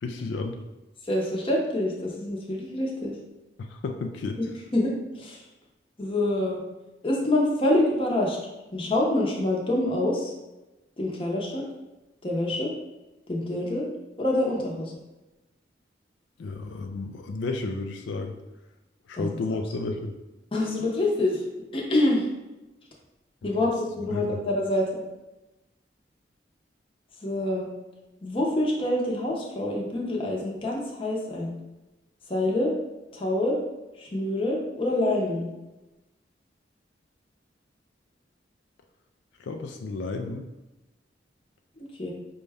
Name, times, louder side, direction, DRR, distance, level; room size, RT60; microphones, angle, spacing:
voice 1, 0.0-0.6 3.6-4.4 16.4-18.4 19.1-20.1 23.4-23.5 24.1-24.4 39.4-40.5, left 3 dB, 85° left, 4 dB, 0.3 m, -32 dB
voice 2, 1.1-3.1 4.4-4.5 4.7-5.4 6.0-6.6 7.0-8.4 8.7-10.3 11.0-11.6 12.2-12.7 13.3-13.9 14.2-14.9 19.1-19.3 20.5-21.4 21.7-22.3 23.4-25.0 27.2-27.7 28.2-31.5 32.3-32.7 33.1-33.6 34.0-35.5 41.8-42.1, left 1 dB, 30° left, -2 dB, 0.7 m, -26 dB
5.1 x 2.2 x 3.4 m, 1.0 s
head